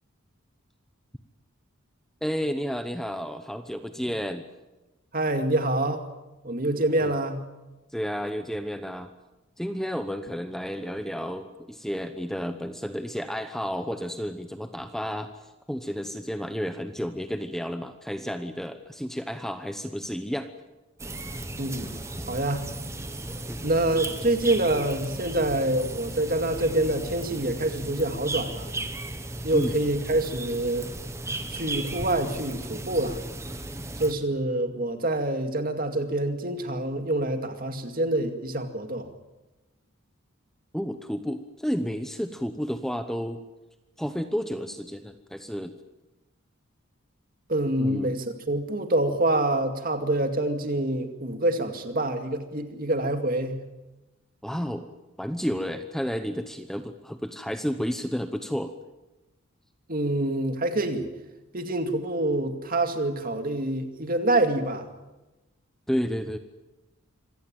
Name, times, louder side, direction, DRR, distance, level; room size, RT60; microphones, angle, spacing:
voice 1, 2.2-4.4 7.0-7.1 7.9-9.1 9.6-20.5 23.5-23.6 29.5-29.7 40.7-43.4 44.0-45.7 47.8-48.2 54.4-54.9 55.2-58.7 65.9-66.4, equal, ahead, 8 dB, 0.9 m, -31 dB
voice 2, 5.1-6.0 6.4-7.4 21.6-21.9 22.3-22.7 23.6-28.7 29.4-30.9 31.3-33.2 34.0-39.1 47.5-53.6 59.9-61.1 61.5-64.9, right 1 dB, 40° right, 6 dB, 2.3 m, -26 dB
sound 1, 21.0-34.1, right 2 dB, 15° right, 1.3 m, -36 dB
26.0 x 17.0 x 9.0 m, 1.1 s
head